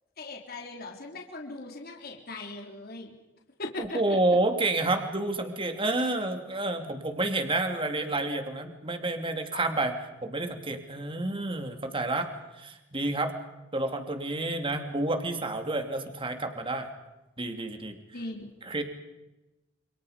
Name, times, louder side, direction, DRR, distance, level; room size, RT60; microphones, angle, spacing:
voice 1, 0.2-3.1 3.6-4.0 9.5-9.6 18.1-18.5, left 2 dB, 50° left, 1 dB, 3.7 m, -39 dB
voice 2, 3.8-9.9 10.2-12.3 12.6-13.3 13.7-16.9 17.4-18.0 18.6-18.8, right 2 dB, 25° right, 5 dB, 2.8 m, -29 dB
29.5 x 28.5 x 5.2 m, 1.0 s
head